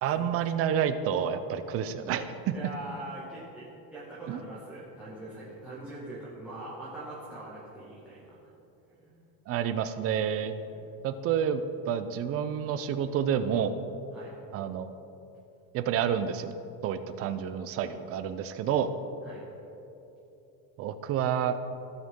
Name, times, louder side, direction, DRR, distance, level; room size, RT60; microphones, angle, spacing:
voice 1, 0.0-2.5 4.3-4.4 9.5-10.5 11.0-13.8 14.5-14.9 15.7-16.5 16.8-18.9 20.8-21.6, right 8 dB, 35° right, 11 dB, 0.4 m, -29 dB
voice 2, 2.5-8.3 9.0-9.3 10.7-10.9 14.1-14.3 19.2-19.4, right 1 dB, 5° right, -10 dB, 1.6 m, -42 dB
16.5 x 6.2 x 3.6 m, 2.9 s
cardioid pair, 155°, 45 cm